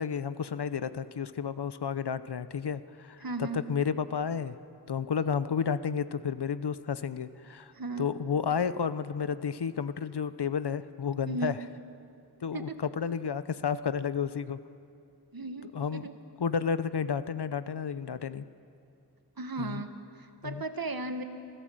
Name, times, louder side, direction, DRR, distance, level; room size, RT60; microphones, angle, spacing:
voice 1, 0.0-4.5 4.9-7.7 8.0-11.6 12.4-14.6 15.7-16.1 16.4-18.4 19.6-19.8 20.4-20.6, left 6 dB, 75° left, 14 dB, 0.8 m, -31 dB
voice 2, 3.2-3.6 7.7-8.2 11.2-11.6 12.5-12.8 15.3-16.1 19.4-19.9 20.4-21.2, right 3 dB, 60° right, 8 dB, 1.4 m, -35 dB
27.0 x 15.5 x 7.7 m, 2.6 s
wide cardioid pair, 65°, 41 cm